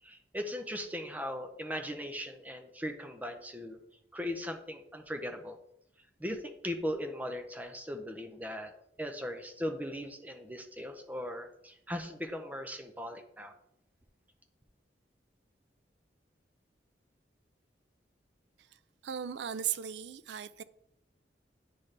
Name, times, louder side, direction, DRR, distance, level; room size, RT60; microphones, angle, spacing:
voice 1, 0.0-3.8 4.1-5.6 6.2-8.7 9.0-13.5, equal, 10° right, 0.6 m, -38 dB
voice 2, 19.0-20.6, right 9 dB, 75° right, 0.4 m, -36 dB
10.0 x 4.0 x 3.2 m
head